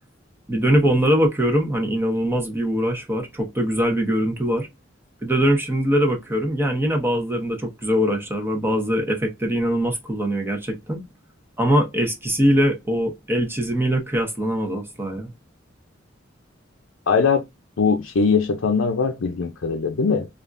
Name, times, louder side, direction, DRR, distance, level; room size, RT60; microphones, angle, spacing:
voice 1, 0.5-4.7 5.2-11.0 11.6-15.3, equal, 10° right, 0.8 m, -22 dB
voice 2, 17.1-17.4 17.8-20.3, left 5 dB, 80° left, 0.5 m, -21 dB
3.4 x 2.5 x 2.5 m
head